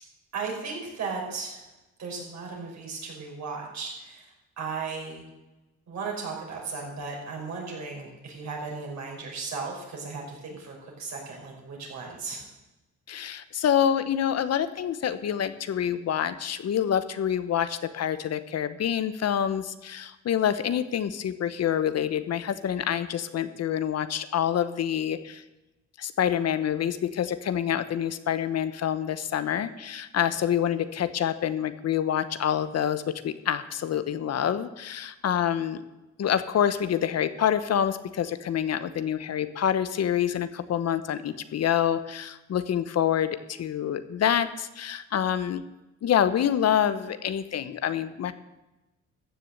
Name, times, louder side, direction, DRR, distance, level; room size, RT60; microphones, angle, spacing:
voice 1, 0.3-1.7 2.0-5.2 5.9-12.5, right 4 dB, 65° right, -1 dB, 5.8 m, -36 dB
voice 2, 13.1-25.4 26.0-35.8 36.2-45.6 46.0-48.3, left 9 dB, 55° left, 12 dB, 0.9 m, -27 dB
14.5 x 7.1 x 7.9 m, 1.0 s
cardioid pair, 90°, 30 cm